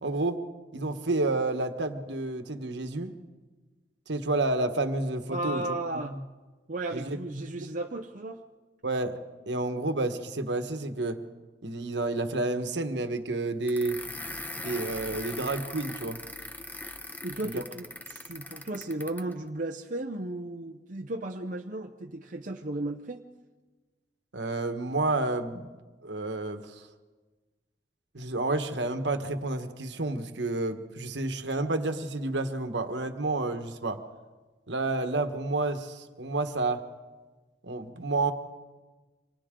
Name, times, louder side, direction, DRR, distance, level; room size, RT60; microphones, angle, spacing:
voice 1, 0.0-0.4 0.7-3.1 4.1-5.6 6.1-6.2 6.9-7.2 8.8-9.2 9.5-11.2 11.6-14.0 14.5-16.2 17.4-17.6 24.3-25.7 26.0-26.9 28.1-34.0 34.7-36.8 37.6-38.3, right 2 dB, 75° right, 7 dB, 1.4 m, -30 dB
voice 2, 5.3-6.1 6.7-8.4 17.2-23.2, right 2 dB, 45° right, 3 dB, 0.8 m, -35 dB
sound 1, 13.7-19.3, left 2 dB, 10° left, 0.9 m, -40 dB
28.5 x 25.0 x 3.8 m, 1.3 s
head